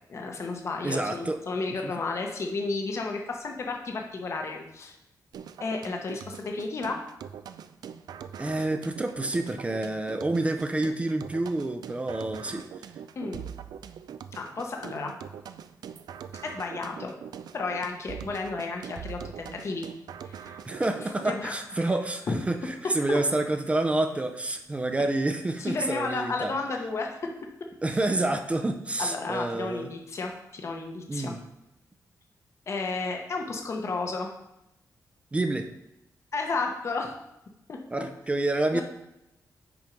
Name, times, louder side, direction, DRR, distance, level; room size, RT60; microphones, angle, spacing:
voice 1, 0.1-5.0 5.6-7.0 13.2-13.5 14.3-15.1 16.4-17.1 17.5-19.9 20.2-20.6 21.3-21.9 22.3-22.4 23.1-23.2 25.6-27.2 29.0-31.3 32.7-34.3 36.3-37.1 37.7-37.8 38.7-38.8, left 3 dB, 45° left, 2 dB, 0.9 m, -32 dB
voice 2, 0.8-1.4 1.8-1.9 8.4-12.6 20.6-26.5 27.8-29.9 31.1-31.4 35.3-35.7 37.9-38.8, right 2 dB, 20° right, 6 dB, 0.5 m, -28 dB
sound 1, 5.3-21.3, right 8 dB, 80° right, 0.3 m, -43 dB
6.0 x 4.4 x 5.2 m, 0.86 s
wide cardioid pair, 140°, 7 cm